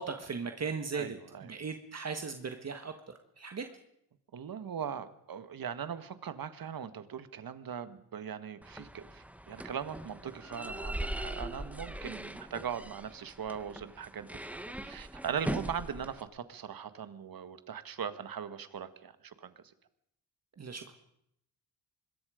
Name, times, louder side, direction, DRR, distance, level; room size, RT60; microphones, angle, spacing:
voice 1, 0.0-1.1 1.4-3.7 20.6-20.9, right 5 dB, 40° right, 6 dB, 1.6 m, -38 dB
voice 2, 0.9-1.4 4.3-19.5, right 8 dB, 55° right, 11 dB, 1.7 m, -40 dB
sound 1, 8.6-16.2, right 1 dB, 5° right, 1.0 m, -41 dB
25.5 x 21.0 x 5.1 m, 0.76 s
wide cardioid pair, 125°, 42 cm